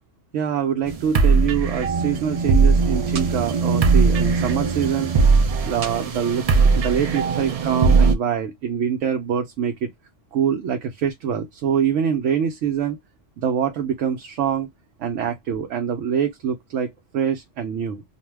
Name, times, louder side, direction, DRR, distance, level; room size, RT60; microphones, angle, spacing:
voice 1, 0.3-5.1 5.6-9.9 10.3-13.0 13.4-14.7 15.0-18.0, right 8 dB, 90° right, 0.9 m, -24 dB
sound 1, 0.9-8.1, right 4 dB, 65° right, 0.3 m, -19 dB
2.5 x 2.1 x 3.2 m
omnidirectional pair, 1.2 m